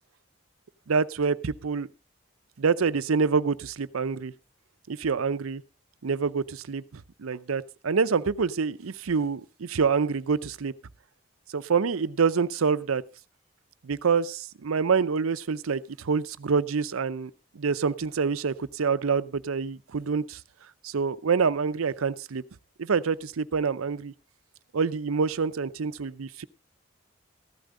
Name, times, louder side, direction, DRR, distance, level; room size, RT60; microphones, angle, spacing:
voice 1, 0.9-1.9 2.6-4.3 4.9-5.6 6.0-10.7 11.5-13.0 13.8-20.4 20.8-22.4 22.8-24.1 24.7-26.4, right 5 dB, 90° right, 15 dB, 0.6 m, -26 dB
14.5 x 11.5 x 3.7 m, 0.31 s
head